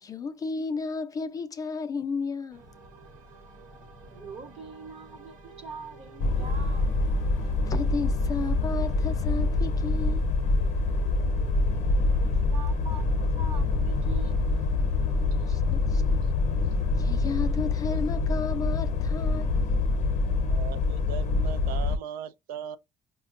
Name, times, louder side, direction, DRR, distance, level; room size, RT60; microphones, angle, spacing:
voice 1, 0.0-2.6 7.6-10.2 15.5-16.2 17.0-19.7, left 4 dB, 25° left, 0.4 m, -33 dB
sound 1, 2.5-17.5, left 1 dB, 65° right, 1.1 m, -47 dB
voice 2, 4.1-6.9 12.0-14.8, right 4 dB, 45° right, 1.0 m, -44 dB
sound 2, 6.2-22.0, left 3 dB, 55° left, 0.7 m, -25 dB
voice 3, 20.3-22.8, right 9 dB, 90° right, 0.5 m, -39 dB
5.3 x 2.1 x 2.4 m
cardioid pair, 175°, 15 cm